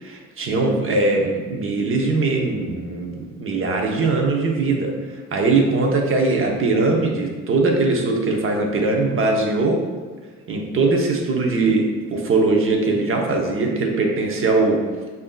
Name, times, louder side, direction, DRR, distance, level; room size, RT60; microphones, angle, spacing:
voice 1, 0.0-4.9 5.3-9.8 10.5-14.8, right 3 dB, 45° right, 1 dB, 0.8 m, -20 dB
5.8 x 2.7 x 2.2 m, 1.4 s
cardioid pair, 90°, 30 cm